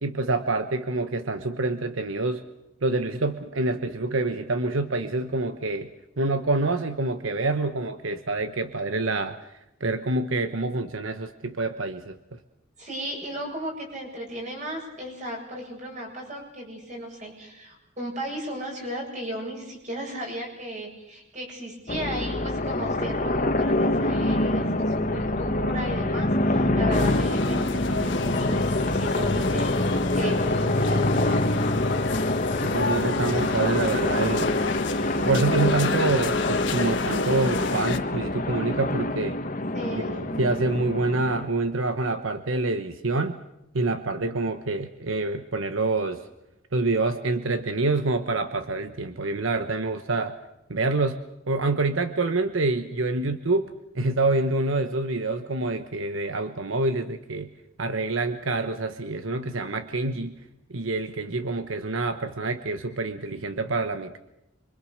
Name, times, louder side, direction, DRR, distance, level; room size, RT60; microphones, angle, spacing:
voice 1, 0.0-2.4 2.8-5.9 6.2-9.5 9.8-12.4 32.6-34.6 35.2-39.4 39.9-43.4 43.7-46.2 46.7-50.4 50.7-53.7 53.9-57.5 57.8-60.3 60.7-64.2, right 2 dB, 80° right, 9 dB, 1.2 m, -27 dB
voice 2, 12.8-31.8 39.7-40.2, right 1 dB, 35° right, 1 dB, 7.8 m, -35 dB
sound 1, 21.9-41.5, left 1 dB, 40° left, 1.6 m, -26 dB
sound 2, 26.9-38.0, left 3 dB, 65° left, 1.5 m, -30 dB
26.0 x 24.5 x 6.7 m, 0.88 s
head